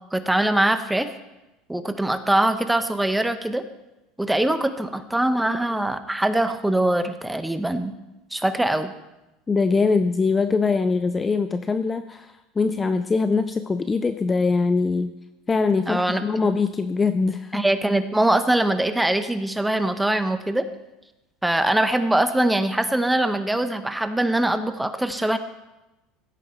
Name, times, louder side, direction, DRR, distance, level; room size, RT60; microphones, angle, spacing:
voice 1, 0.1-1.1 1.7-3.6 4.2-7.9 8.3-8.9 15.9-16.2 17.5-20.6 21.4-25.4, right 1 dB, 5° right, 9 dB, 0.8 m, -22 dB
voice 2, 9.5-15.1 15.5-17.6, left 4 dB, 15° left, 10 dB, 0.4 m, -22 dB
16.0 x 9.0 x 4.4 m, 0.99 s
supercardioid pair, 135°, 0 cm